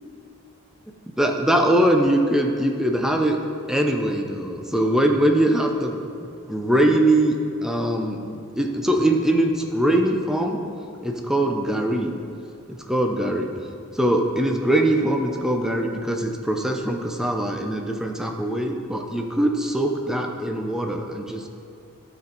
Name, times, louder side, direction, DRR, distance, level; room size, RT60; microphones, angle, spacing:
voice 1, 1.2-3.4 3.7-10.6 11.0-12.1 12.7-13.5 14.0-21.5, right 1 dB, ahead, 2 dB, 0.6 m, -22 dB
12.5 x 4.4 x 4.0 m, 2.5 s
head